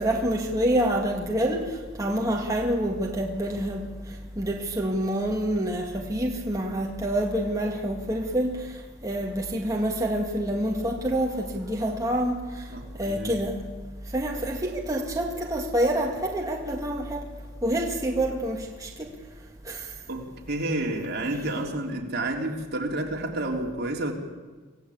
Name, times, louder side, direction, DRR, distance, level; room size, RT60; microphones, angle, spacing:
voice 1, 0.0-13.6 14.1-17.3 17.6-19.1 19.6-19.9, right 1 dB, 15° right, -1 dB, 2.1 m, -27 dB
voice 2, 12.7-13.4 20.1-24.1, right 1 dB, 55° right, 1 dB, 3.5 m, -30 dB
26.5 x 16.5 x 8.6 m, 1.3 s
head